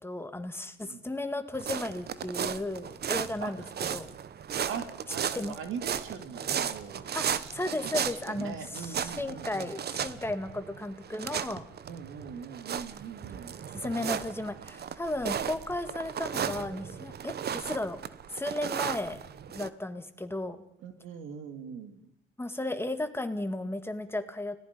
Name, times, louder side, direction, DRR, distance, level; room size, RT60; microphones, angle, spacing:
voice 1, 0.0-3.6 3.9-4.1 5.3-5.6 7.1-11.7 13.7-18.0 18.3-19.2 19.5-20.6 22.4-24.6, left 2 dB, 10° left, 8 dB, 2.2 m, -34 dB
sound 1, 1.5-19.7, right 8 dB, 55° right, 1.1 m, -35 dB
voice 2, 4.7-9.7 11.9-13.5 20.8-22.1, right 6 dB, 85° right, 8 dB, 2.7 m, -41 dB
30.0 x 18.5 x 5.4 m, 0.66 s
cardioid pair, 90°, 20 cm